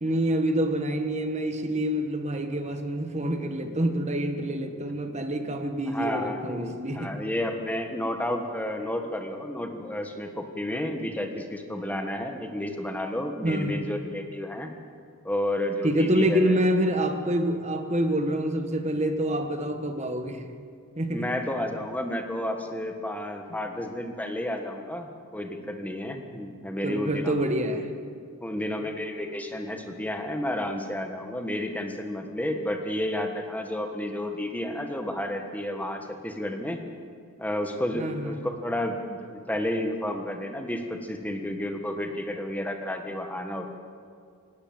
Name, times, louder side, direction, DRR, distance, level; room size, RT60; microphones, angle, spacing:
voice 1, 0.0-7.1 13.4-13.9 15.8-20.5 21.0-21.3 26.8-27.9 37.9-38.5, right 1 dB, 30° right, 6 dB, 1.5 m, -27 dB
voice 2, 5.9-14.7 15.2-16.6 21.1-27.4 28.4-36.8 37.4-43.8, left 1 dB, 5° left, 4 dB, 1.5 m, -31 dB
19.0 x 18.0 x 7.7 m, 2.2 s
head